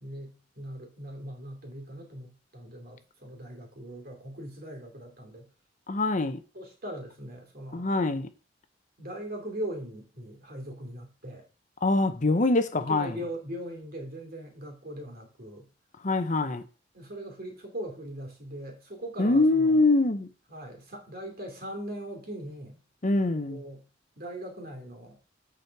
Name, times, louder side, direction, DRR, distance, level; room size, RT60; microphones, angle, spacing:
voice 1, 0.0-5.5 6.5-7.9 9.0-11.4 12.7-15.7 16.9-19.9 20.5-22.8 23.3-23.8 24.2-25.2, right 1 dB, 50° right, 2.7 m, -40 dB
voice 2, 5.9-6.4 7.7-8.3 11.8-13.1 16.0-16.6 19.2-20.3 23.0-23.6, left 2 dB, 40° left, 0.8 m, -24 dB
8.1 x 6.3 x 4.7 m
head